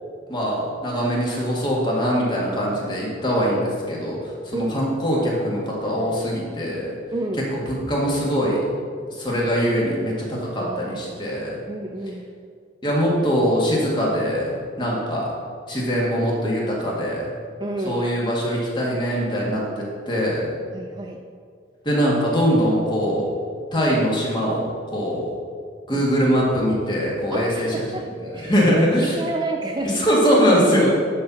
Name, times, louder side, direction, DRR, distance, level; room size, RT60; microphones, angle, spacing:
voice 1, 0.3-7.0 7.5-8.6 9.1-11.6 12.8-15.3 15.7-17.3 17.8-20.5 21.8-23.3 23.7-25.3 25.9-29.2 29.8-30.9, equal, 25° left, -4 dB, 1.9 m, -22 dB
voice 2, 7.1-7.4 10.6-11.1 11.7-12.3 17.6-18.0 20.7-21.2 27.3-28.1 28.3-29.9, right 2 dB, 20° right, 2 dB, 0.4 m, -30 dB
11.0 x 4.4 x 6.2 m, 2.2 s
head